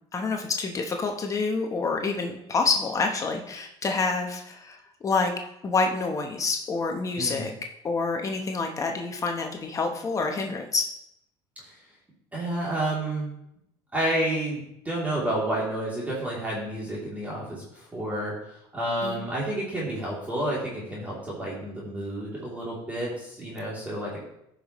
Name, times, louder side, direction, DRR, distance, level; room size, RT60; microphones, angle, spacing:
voice 1, 0.1-4.8 5.0-5.3 5.6-7.5 7.8-10.9 19.0-19.2, left 4 dB, 30° left, 3 dB, 0.9 m, -27 dB
voice 2, 7.2-7.5 12.3-13.3 13.9-18.3 18.7-24.2, right 1 dB, 15° right, -6 dB, 2.8 m, -30 dB
14.5 x 5.8 x 3.0 m, 0.78 s
cardioid pair, 110°, 11 cm